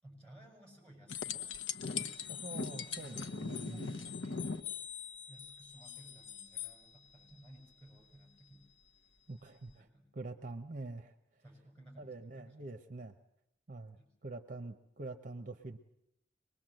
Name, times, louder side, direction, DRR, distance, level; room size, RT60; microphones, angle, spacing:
voice 1, 0.0-1.5 2.9-4.8 5.3-8.7 9.4-9.5 9.7-10.1 11.4-12.7 14.0-14.1, right 1 dB, 5° left, -1 dB, 6.6 m, -57 dB
sound 1, 1.1-6.7 9.7-9.8, left 5 dB, 85° left, 1.0 m, -41 dB
voice 2, 2.3-3.8 9.3-9.9 10.1-11.1 12.0-13.2 13.7-15.8, right 2 dB, 40° right, 8 dB, 0.8 m, -45 dB
24.0 x 21.0 x 7.7 m, 0.82 s
head